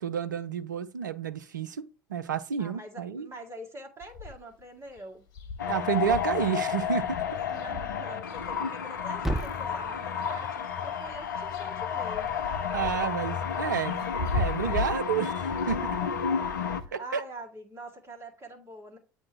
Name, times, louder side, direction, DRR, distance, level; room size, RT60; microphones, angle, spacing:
voice 1, 0.0-3.3 5.6-7.2 12.7-14.0 14.3-15.9 16.9-17.2, right 7 dB, 75° right, 0.5 m, -30 dB
voice 2, 2.6-5.2 7.4-12.3 15.7-16.5 16.8-19.0, right 1 dB, 25° right, 2.1 m, -45 dB
sound 1, 4.0-4.6 5.0-5.1 5.3-9.3 9.9-10.7 11.0-16.9, left 3 dB, 40° left, 1.3 m, -38 dB
sound 2, 5.6-16.8, left 7 dB, 70° left, 0.5 m, -31 dB
Thump thud, 8.3-12.4, right 1 dB, ahead, 0.6 m, -39 dB
8.6 x 2.9 x 4.5 m
figure-of-eight pair, 65°, 10 cm